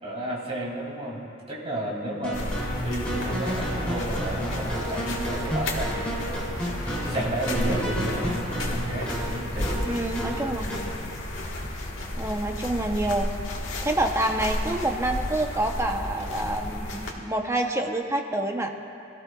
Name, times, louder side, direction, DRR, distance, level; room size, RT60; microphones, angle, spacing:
voice 1, 0.0-1.2 1.5-6.5 7.0-9.9 10.6-11.0, right 1 dB, 30° right, -3 dB, 2.5 m, -33 dB
sound 1, 2.2-11.0, equal, 5° left, 3.1 m, -31 dB
sound 2, 2.3-17.1, left 1 dB, 75° left, 1.5 m, -32 dB
voice 2, 9.9-10.7 12.2-13.3 13.8-18.7, right 1 dB, 15° right, 3 dB, 0.8 m, -27 dB
23.0 x 13.5 x 2.3 m, 2.7 s
head